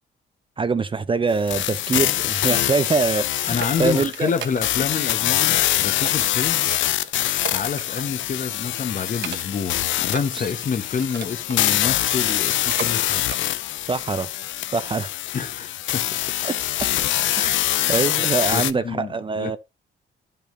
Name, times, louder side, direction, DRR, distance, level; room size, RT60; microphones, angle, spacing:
voice 1, 0.6-4.3 13.9-14.3 14.7-15.1 16.4-16.5 17.3-17.6 17.9-19.6, right 4 dB, 25° right, 0.6 m, -24 dB
sound 1, 1.5-18.7, left 13 dB, 75° left, 0.5 m, -24 dB
sound 2, 3.3-5.0 5.3-5.7 6.0-8.2 8.5-8.7 9.1-9.7 10.0-11.6 12.1-13.0 13.2-13.4 13.9-14.0, right 8 dB, 65° right, 1.1 m, -37 dB
voice 2, 3.5-6.7 7.5-13.2 15.3-16.4 18.5-19.6, left 6 dB, 40° left, 1.1 m, -28 dB
10.5 x 5.7 x 3.8 m
cardioid pair, 90°, 20 cm